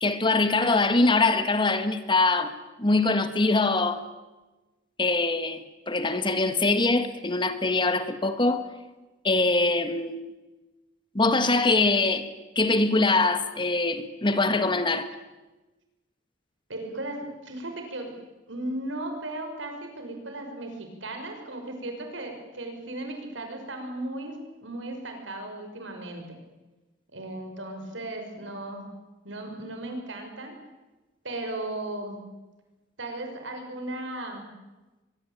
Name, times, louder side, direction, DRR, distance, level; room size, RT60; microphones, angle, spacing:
voice 1, 0.0-2.5 2.8-4.0 5.0-5.6 5.9-8.6 9.2-10.2 11.2-12.3 12.6-15.1, left 3 dB, 25° left, 1.7 m, -23 dB
voice 2, 16.7-17.2 17.4-18.1 18.5-24.3 24.6-26.4 27.1-28.9 29.2-30.5 31.2-32.2 33.0-34.5, right 1 dB, 85° right, 6.3 m, -36 dB
23.5 x 21.5 x 9.1 m
head